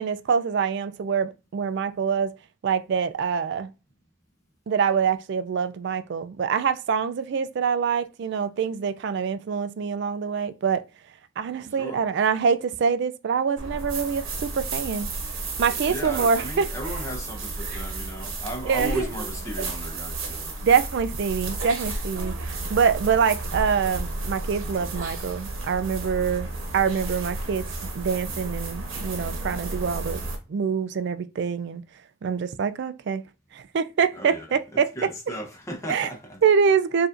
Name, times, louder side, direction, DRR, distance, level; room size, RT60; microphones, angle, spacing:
voice 1, 0.0-2.3 2.6-3.7 4.7-10.8 11.4-15.1 15.6-16.7 18.7-18.9 20.6-30.2 30.5-31.8 32.2-33.2 33.5-34.9 35.9-36.1 36.4-37.1, right 6 dB, 55° right, 0.3 m, -25 dB
voice 2, 11.7-12.1 15.9-20.6 34.1-36.4, right 1 dB, 15° left, 0.8 m, -36 dB
sound 1, 13.6-30.4, right 2 dB, 75° right, 0.9 m, -32 dB
4.7 x 2.5 x 2.5 m
head